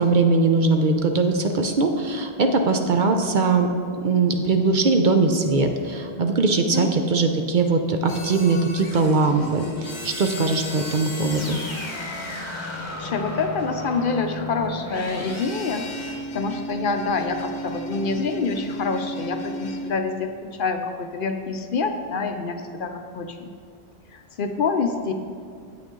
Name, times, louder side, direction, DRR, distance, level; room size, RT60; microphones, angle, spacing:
voice 1, 0.0-3.7 4.0-11.6, right 3 dB, 55° right, 5 dB, 0.7 m, -21 dB
sound 1, 8.1-19.9, equal, 30° left, 1.0 m, -34 dB
voice 2, 13.0-23.5 24.1-25.1, left 4 dB, 60° left, 6 dB, 0.7 m, -27 dB
8.9 x 8.4 x 3.8 m, 2.3 s
omnidirectional pair, 1.1 m